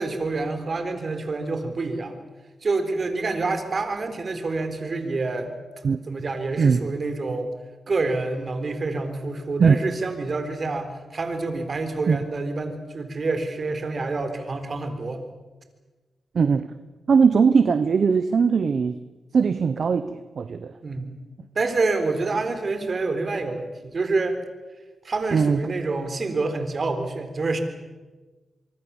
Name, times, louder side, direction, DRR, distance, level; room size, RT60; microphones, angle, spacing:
voice 1, 0.0-2.2 2.6-5.5 6.1-7.5 7.9-15.2 20.8-21.2 21.6-24.4 25.0-27.6, right 3 dB, 50° right, 8 dB, 4.0 m, -27 dB
voice 2, 16.3-16.7 17.1-19.0 19.3-20.7 25.3-25.6, right 5 dB, 65° right, 12 dB, 1.0 m, -20 dB
25.5 x 23.0 x 7.3 m, 1.2 s
cardioid pair, 75°, 0 cm